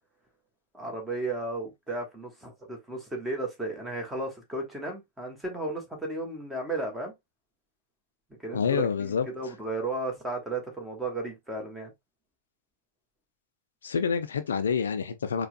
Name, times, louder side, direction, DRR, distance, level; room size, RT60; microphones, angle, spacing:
voice 1, 0.7-7.1 8.4-11.9, right 2 dB, 5° right, 1.2 m, -34 dB
voice 2, 8.5-9.3 13.8-15.5, left 6 dB, 70° left, 0.4 m, -27 dB
4.3 x 2.2 x 2.4 m
figure-of-eight pair, 90°, 0 cm